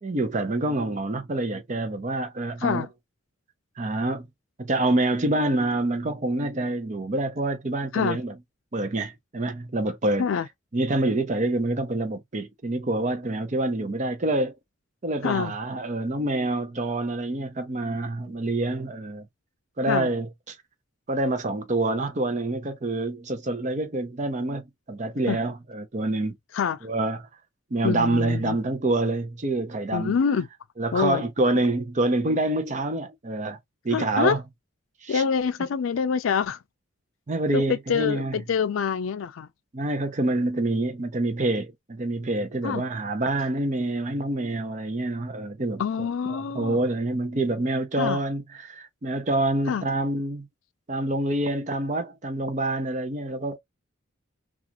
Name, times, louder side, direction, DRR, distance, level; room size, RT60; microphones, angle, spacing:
voice 1, 0.0-2.9 3.8-4.3 4.6-8.3 8.7-10.3 10.7-14.5 15.0-19.3 19.8-20.6 21.1-24.6 24.9-26.4 26.8-27.2 27.7-30.1 30.8-33.6 33.8-34.4 35.0-35.2 37.3-38.4 39.7-45.8 46.3-50.5 50.9-53.6, right 2 dB, 35° right, 0.6 m, -26 dB
voice 2, 15.2-15.5 19.9-20.1 25.2-25.4 26.5-26.9 27.8-28.6 29.9-30.5 30.9-31.2 33.9-34.4 35.1-36.6 37.5-39.5 42.6-42.8 45.8-46.8 48.0-48.2 49.7-49.9, left 6 dB, 85° left, 0.4 m, -26 dB
2.4 x 2.4 x 2.8 m
head